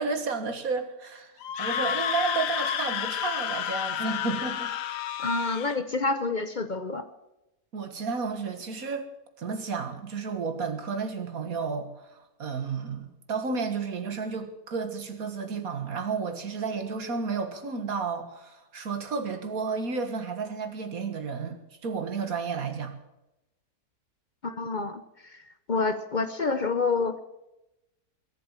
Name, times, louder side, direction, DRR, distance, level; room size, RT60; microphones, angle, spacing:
voice 1, 0.0-1.3 1.6-4.7 7.7-9.1 9.4-22.9, right 5 dB, 60° right, 7 dB, 2.1 m, -32 dB
Screaming, 1.4-5.8, left 9 dB, 85° left, 1.5 m, -30 dB
voice 2, 5.2-7.1 24.4-25.4 25.7-27.2, left 3 dB, 45° left, 11 dB, 0.6 m, -28 dB
22.0 x 8.2 x 7.3 m, 0.94 s
omnidirectional pair, 1.7 m